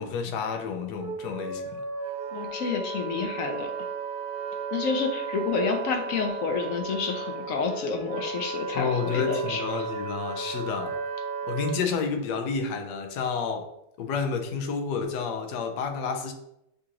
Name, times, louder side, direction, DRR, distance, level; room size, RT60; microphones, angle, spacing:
voice 1, 0.0-1.8 8.7-11.0 11.5-13.7 14.0-16.3, left 5 dB, 85° left, 1.2 m, -30 dB
Wind instrument woodwind instrument, 0.9-11.8, right 4 dB, 90° right, 1.5 m, -34 dB
voice 2, 2.3-3.9 4.7-9.9, left 5 dB, 65° left, 1.0 m, -29 dB
6.5 x 2.9 x 2.5 m
omnidirectional pair, 1.7 m